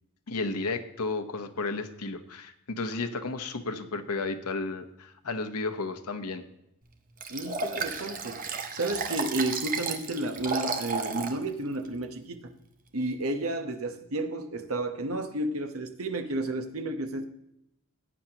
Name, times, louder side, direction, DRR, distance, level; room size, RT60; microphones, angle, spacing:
voice 1, 0.3-6.4, left 3 dB, 90° left, 7 dB, 1.1 m, -33 dB
Liquid, 7.2-11.4 11.9-12.0, right 4 dB, 40° right, 1.0 m, -33 dB
voice 2, 7.3-8.4 8.7-12.5 12.9-17.3, right 2 dB, 70° right, 7 dB, 1.0 m, -32 dB
15.0 x 9.3 x 2.9 m, 0.82 s
head